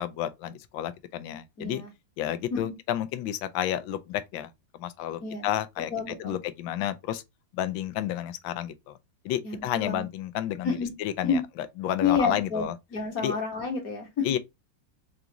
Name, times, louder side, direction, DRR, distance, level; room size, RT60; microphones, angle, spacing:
voice 1, 0.0-1.8 2.2-7.2 7.5-8.9 9.2-11.4 11.8-12.7 13.2-13.3 14.2-14.4, left 11 dB, 90° left, 1.4 m, -31 dB
voice 2, 1.6-1.9 2.5-2.7 5.2-5.5 5.9-6.4 9.4-10.0 10.6-10.9 11.2-11.4 12.0-14.3, left 5 dB, 50° left, 1.7 m, -29 dB
4.8 x 2.5 x 2.8 m
omnidirectional pair, 2.1 m